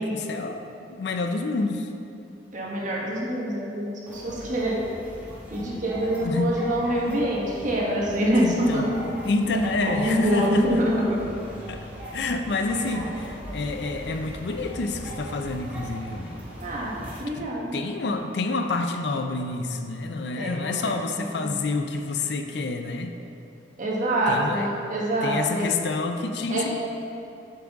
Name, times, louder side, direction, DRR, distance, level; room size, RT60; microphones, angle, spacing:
voice 1, 0.0-1.9 6.2-6.5 8.4-10.8 11.7-11.8 12.1-16.4 17.4-17.5 17.7-23.1 24.3-24.7 25.2-26.8, left 3 dB, 70° left, 6 dB, 0.5 m, -28 dB
voice 2, 2.5-4.8 5.5-8.9 9.4-11.3 12.7-13.1 16.6-16.9 17.2-17.8 20.4-21.6 23.8-25.7 26.5-26.8, right 1 dB, 45° right, -4 dB, 1.3 m, -26 dB
sound 1, 4.1-17.2, right 1 dB, 10° right, 1.4 m, -39 dB
7.6 x 5.9 x 3.6 m, 2.6 s
head